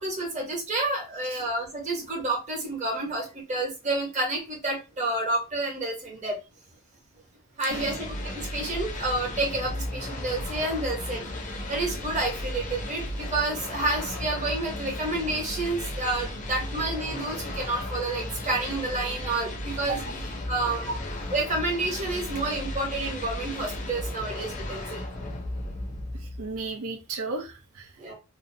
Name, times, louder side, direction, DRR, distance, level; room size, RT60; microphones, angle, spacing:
voice 1, 0.0-6.4 7.6-11.3 11.7-20.9 21.3-25.0 28.0-28.1, right 2 dB, 30° right, -1 dB, 0.9 m, -29 dB
sound 1, 7.7-26.7, left 1 dB, 35° left, 0.5 m, -35 dB
voice 2, 26.2-27.9, right 3 dB, 70° right, 3 dB, 0.6 m, -34 dB
2.7 x 2.1 x 2.6 m, 0.27 s
head